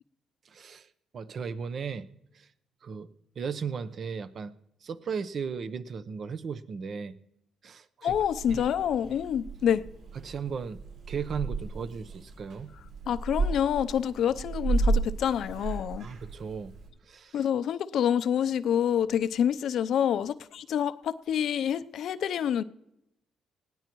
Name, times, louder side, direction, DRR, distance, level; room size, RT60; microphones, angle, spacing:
voice 1, 0.5-0.9 1.1-2.1 2.3-2.5 2.8-3.1 3.4-4.5 4.8-7.1 7.6-8.2 8.5-8.6 10.2-10.8 11.1-12.7 16.0-16.7 17.1-17.4, right 6 dB, 55° right, 0.8 m, -36 dB
voice 2, 8.0-9.8 13.1-16.1 17.3-22.6, left 9 dB, 70° left, 0.6 m, -27 dB
Purr / Meow, 8.1-16.9, right 3 dB, 75° right, 5.5 m, -33 dB
19.5 x 17.5 x 3.1 m
cardioid pair, 90°, 0 cm